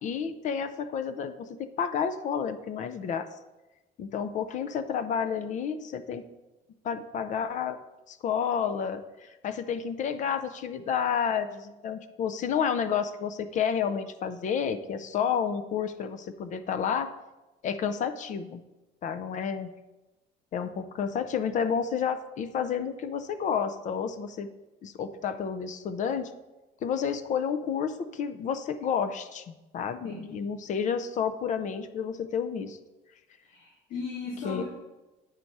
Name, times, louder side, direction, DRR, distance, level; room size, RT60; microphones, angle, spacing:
voice 1, 0.0-3.3 4.0-6.2 6.8-7.8 8.1-17.1 17.6-18.6 19.0-19.7 20.5-24.5 24.8-26.3 26.8-32.8 34.4-34.6, left 7 dB, 40° left, 10 dB, 0.4 m, -30 dB
voice 2, 30.0-30.4 33.4-34.6, left 4 dB, 75° left, -8 dB, 2.7 m, -37 dB
8.9 x 4.1 x 4.6 m, 1.1 s
cardioid pair, 160°, 19 cm